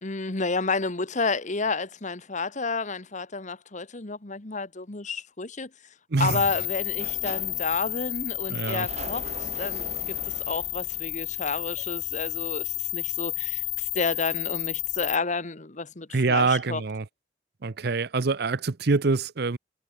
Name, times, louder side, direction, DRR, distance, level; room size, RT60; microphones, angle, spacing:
voice 1, 0.0-5.7 6.2-9.3 9.6-16.8, left 4 dB, 40° left, 1.4 m, -30 dB
voice 2, 6.1-6.4 8.5-8.9 16.1-17.0 17.6-19.6, right 4 dB, 60° right, 0.7 m, -25 dB
sound 1, 6.3-15.2, left 20 dB, 85° left, 1.4 m, -31 dB
Sliding door, 6.8-12.5, right 3 dB, 35° right, 1.7 m, -43 dB
head